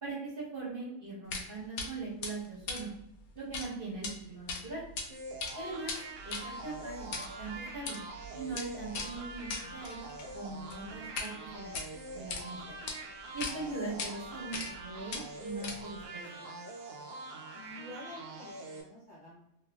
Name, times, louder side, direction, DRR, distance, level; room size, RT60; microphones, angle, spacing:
voice 1, 0.0-2.9 3.3-4.8 5.5-5.9 6.2-8.0 8.3-10.1 10.3-11.7 12.1-12.6 13.3-16.2, right 3 dB, 40° right, -7 dB, 1.1 m, -41 dB
sound 1, 1.3-1.5 1.8-1.9 2.2-3.7 3.9-4.1 4.5-5.1 5.3-11.3 11.6-12.4 12.9-13.0 13.4-13.5 14.0-14.1 14.5-14.8 15.1-16.0, left 4 dB, 75° left, 1.0 m, -39 dB
sound 2, 5.1-18.8, right 2 dB, 80° right, 1.1 m, -44 dB
voice 2, 17.5-19.4, left 1 dB, 40° left, -8 dB, 0.8 m, -49 dB
2.9 x 2.4 x 2.2 m, 0.79 s
omnidirectional pair, 1.6 m